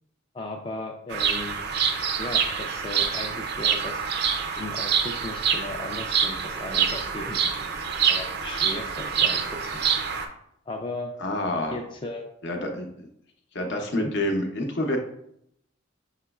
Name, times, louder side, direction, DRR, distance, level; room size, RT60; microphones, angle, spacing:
voice 1, 0.3-1.6 2.2-4.0 4.6-7.4 8.1-9.9 10.7-11.1 11.7-12.2 14.0-14.1, left 2 dB, 25° left, 1 dB, 0.3 m, -36 dB
Bird vocalization bird call bird song, 1.1-10.3, right 7 dB, 55° right, 0.4 m, -26 dB
voice 2, 11.2-11.8 12.4-13.1 13.5-15.0, left 1 dB, 60° left, 3 dB, 0.7 m, -28 dB
5.7 x 3.0 x 2.3 m, 0.73 s
head